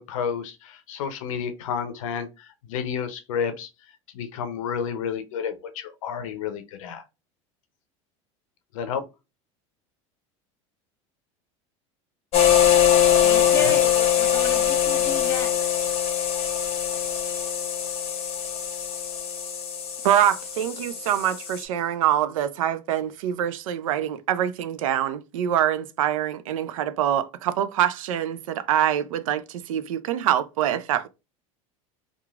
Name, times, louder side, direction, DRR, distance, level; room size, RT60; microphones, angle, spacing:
voice 1, 0.0-3.7 4.1-7.0 8.7-9.0 13.4-13.8, left 7 dB, 80° left, 0.5 m, -31 dB
sound 1, 12.3-21.6, left 10 dB, 35° left, 0.8 m, -22 dB
voice 2, 13.2-15.7, left 2 dB, 15° left, 1.2 m, -33 dB
voice 3, 20.0-31.1, right 11 dB, 85° right, 0.4 m, -25 dB
3.0 x 2.3 x 2.3 m
supercardioid pair, 100°, 17 cm